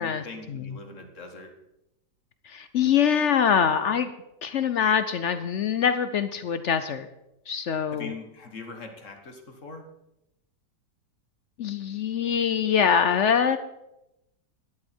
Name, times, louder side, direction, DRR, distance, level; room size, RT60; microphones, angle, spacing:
voice 1, 0.0-1.5 7.9-9.8, left 3 dB, 50° left, 5 dB, 1.7 m, -41 dB
voice 2, 2.5-4.1 4.4-7.1 7.5-8.1 11.6-13.6, left 7 dB, 65° left, 11 dB, 0.7 m, -24 dB
12.5 x 11.0 x 4.4 m, 0.88 s
omnidirectional pair, 1.8 m